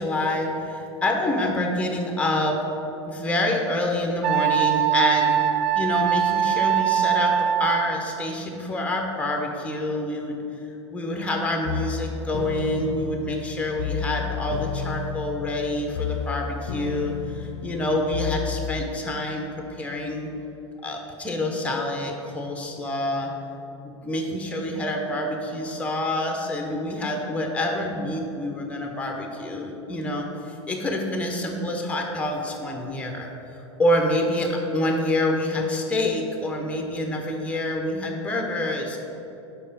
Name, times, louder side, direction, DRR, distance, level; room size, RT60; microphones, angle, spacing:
voice 1, 0.0-2.6 3.1-5.4 5.7-10.4 10.9-20.3 20.8-23.3 24.0-39.0, left 1 dB, 10° left, 2 dB, 0.9 m, -27 dB
Wind instrument woodwind instrument, 4.2-8.0, right 10 dB, 40° right, 0.4 m, -22 dB
sound 1, 11.7-18.9, left 8 dB, 70° left, 0.4 m, -32 dB
5.2 x 4.3 x 5.5 m, 2.9 s
hypercardioid pair, 100°, 16 cm